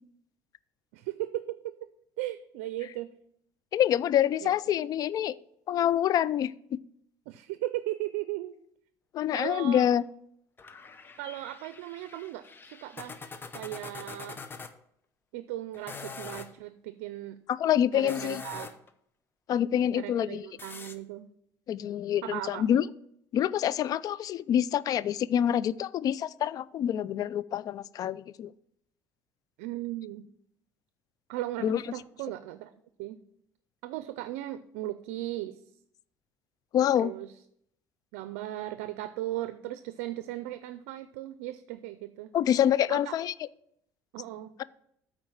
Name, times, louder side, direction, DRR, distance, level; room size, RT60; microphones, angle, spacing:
voice 1, 0.9-1.7 2.2-3.1 4.4-4.5 7.3-8.5 9.3-9.9 11.2-13.2 13.5-14.4 15.3-17.4 17.9-18.7 19.9-21.3 22.2-22.6 29.6-30.2 31.3-32.7 33.0-33.2 33.8-35.6 36.9-37.3 38.1-42.3 42.9-43.1 44.1-44.5, right 15 dB, 90° right, 12 dB, 0.5 m, -37 dB
voice 2, 3.7-5.3 5.7-6.8 9.1-10.0 17.5-18.4 19.5-20.5 21.7-22.8 23.3-28.5 31.6-31.8 36.7-37.1 42.3-43.3, left 10 dB, 50° left, 19 dB, 0.4 m, -26 dB
sound 1, 10.6-14.7 15.7-16.5 17.9-18.9 20.6-21.0, left 4 dB, 25° left, 0.8 m, -44 dB
8.8 x 4.5 x 7.1 m, 0.71 s
supercardioid pair, 95°, 8 cm